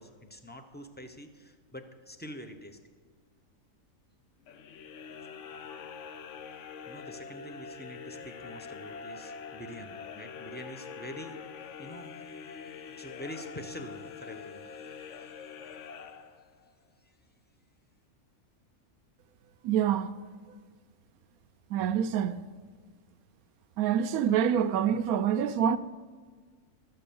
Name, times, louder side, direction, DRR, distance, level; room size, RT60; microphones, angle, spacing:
voice 1, 0.0-2.8 6.9-15.4 17.0-17.2, equal, 10° left, 0.5 m, -46 dB
sound 1, 4.4-16.7, left 6 dB, 65° left, 0.9 m, -44 dB
voice 2, 19.6-20.1 21.7-22.4 23.8-25.8, right 9 dB, 85° right, 1.1 m, -26 dB
13.0 x 7.7 x 6.9 m
omnidirectional pair, 1.5 m